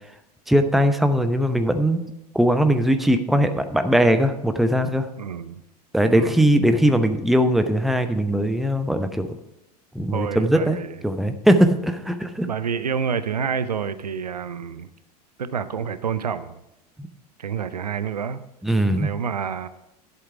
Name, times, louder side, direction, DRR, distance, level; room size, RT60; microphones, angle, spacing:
voice 1, 0.5-2.0 2.3-5.1 5.9-9.3 9.9-10.8 11.0-12.5 17.0-17.1 18.6-19.1, equal, ahead, 9 dB, 0.7 m, -20 dB
voice 2, 5.2-5.6 6.1-6.4 10.1-11.0 12.4-14.9 15.4-16.6 17.4-18.4 19.0-19.7, right 7 dB, 75° right, 13 dB, 0.6 m, -28 dB
11.0 x 7.9 x 4.8 m, 0.89 s
figure-of-eight pair, 85°, 21 cm